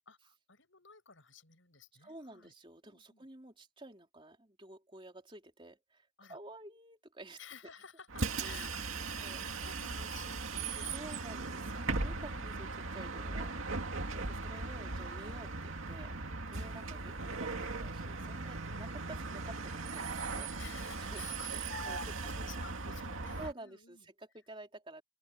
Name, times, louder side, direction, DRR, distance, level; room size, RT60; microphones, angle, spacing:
voice 1, 0.1-2.5 2.8-3.2 6.2-6.4 7.4-11.6 14.0-14.5 14.8-15.4 16.5-16.8 20.5-21.5 22.4-24.1, left 6 dB, 70° left, 7.8 m, -54 dB
voice 2, 2.0-7.4 8.4-8.7 9.0-9.4 10.9-16.1 16.4-20.5 21.0-21.2 21.5-22.5 23.4-25.0, right 1 dB, 25° right, 3.4 m, -51 dB
Bus, 8.1-23.5, right 3 dB, 85° right, 2.3 m, -38 dB
open air
head